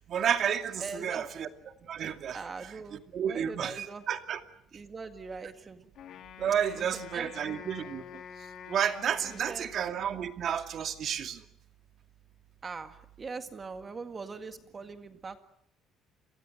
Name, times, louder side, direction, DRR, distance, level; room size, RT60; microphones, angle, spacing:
voice 1, 0.1-1.5 1.8-2.4 3.1-4.4 6.4-8.2 8.7-11.4, right 8 dB, 45° right, 7 dB, 2.4 m, -31 dB
voice 2, 0.8-1.2 2.3-4.0 4.7-5.9 6.8-7.3 9.2-9.7 12.6-15.4, right 4 dB, 25° right, 8 dB, 1.9 m, -42 dB
Wind instrument woodwind instrument, 6.0-10.4, left 8 dB, 55° left, 3.1 m, -48 dB
29.5 x 23.5 x 7.8 m, 0.66 s
cardioid pair, 140°, 0 cm